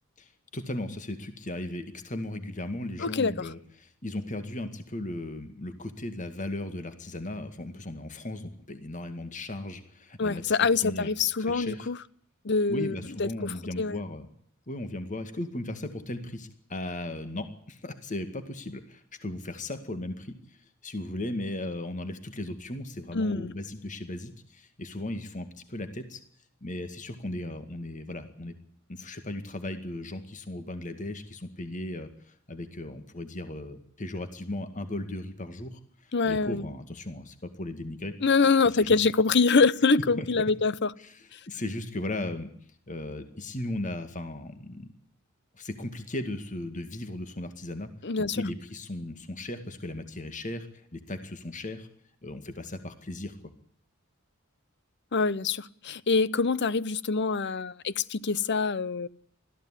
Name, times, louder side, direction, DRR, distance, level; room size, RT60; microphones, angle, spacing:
voice 1, 0.2-11.1 11.5-11.9 12.7-14.3 14.7-20.6 20.8-26.2 26.6-28.5 28.9-38.2 38.8-39.0 40.2-40.3 41.0-42.5 42.9-44.9 45.5-47.9 48.2-51.9 52.2-53.4, left 1 dB, 35° left, 9 dB, 2.1 m, -36 dB
voice 2, 3.0-3.5 10.2-12.0 12.4-14.0 23.1-23.5 36.1-36.7 38.2-40.7 41.3-41.4 48.0-48.4 55.1-59.1, left 4 dB, 55° left, 18 dB, 0.8 m, -25 dB
20.5 x 14.5 x 9.9 m, 0.65 s
head